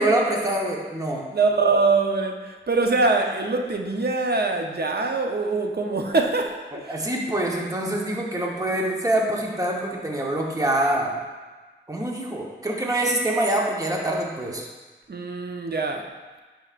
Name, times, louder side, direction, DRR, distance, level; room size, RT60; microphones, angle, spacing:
voice 1, 0.0-1.3 6.7-11.2 11.9-14.7, right 1 dB, 15° right, -1 dB, 1.0 m, -25 dB
voice 2, 1.3-7.1 15.1-16.1, right 3 dB, 50° right, 3 dB, 0.7 m, -23 dB
8.7 x 5.7 x 2.5 m, 1.3 s
wide cardioid pair, 60°, 20 cm